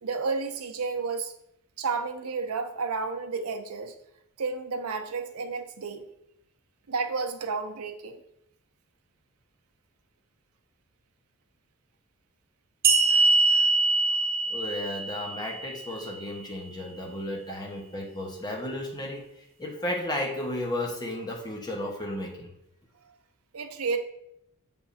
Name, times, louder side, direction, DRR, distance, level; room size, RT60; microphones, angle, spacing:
voice 1, 0.0-1.3 1.8-3.9 4.4-6.1 6.9-8.2 17.5-17.6 23.5-24.0, right 4 dB, 75° right, 6 dB, 0.6 m, -31 dB
sound 1, 12.8-16.2, right 3 dB, 45° right, 0.9 m, -23 dB
voice 2, 14.5-22.5, left 1 dB, 20° left, -1 dB, 1.1 m, -34 dB
7.3 x 5.2 x 2.7 m, 0.79 s
head